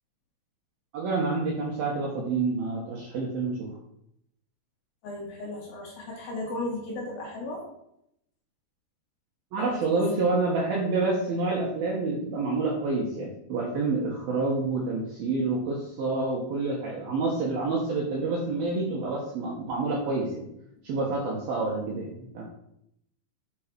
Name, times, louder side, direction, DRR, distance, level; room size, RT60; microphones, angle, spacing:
voice 1, 0.9-3.7 9.5-20.4 20.8-22.4, right 3 dB, 65° right, -2 dB, 2.5 m, -28 dB
voice 2, 5.0-7.7 9.6-9.8, left 2 dB, 55° left, -2 dB, 3.2 m, -35 dB
8.4 x 5.5 x 6.1 m, 0.76 s
omnidirectional pair, 5.9 m